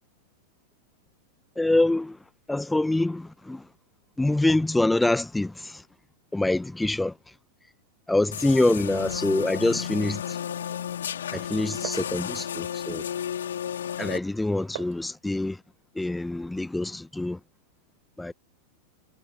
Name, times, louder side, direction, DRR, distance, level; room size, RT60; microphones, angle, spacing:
voice 1, 1.6-2.2 2.5-3.6 4.2-5.8 6.3-7.1 8.1-10.4 11.3-13.0 14.0-15.6 15.9-17.4 18.2-18.3, left 2 dB, 5° left, 1.2 m, -25 dB
sound 1, 8.3-14.2, left 9 dB, 65° left, 4.6 m, -33 dB
Glass, 9.9-15.0, right 20 dB, 50° right, 4.7 m, -46 dB
figure-of-eight pair, 90°, 0 cm